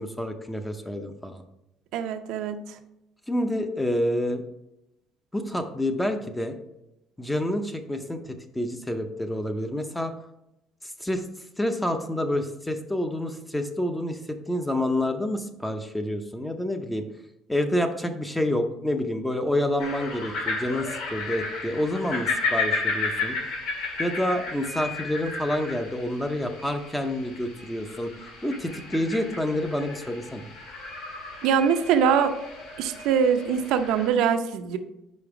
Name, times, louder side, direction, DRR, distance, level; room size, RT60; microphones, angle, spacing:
voice 1, 0.0-1.4 3.3-4.4 5.3-6.6 7.2-10.1 11.0-11.2 11.6-17.0 17.5-23.4 24.0-28.1 28.4-30.5, left 1 dB, 5° left, 7 dB, 0.6 m, -28 dB
voice 2, 1.9-2.6 31.4-32.3 32.8-34.8, right 7 dB, 80° right, 7 dB, 0.5 m, -23 dB
sound 1, 19.8-34.1, left 3 dB, 85° left, 1.8 m, -33 dB
5.2 x 4.9 x 4.8 m, 0.88 s
cardioid pair, 140°, 0 cm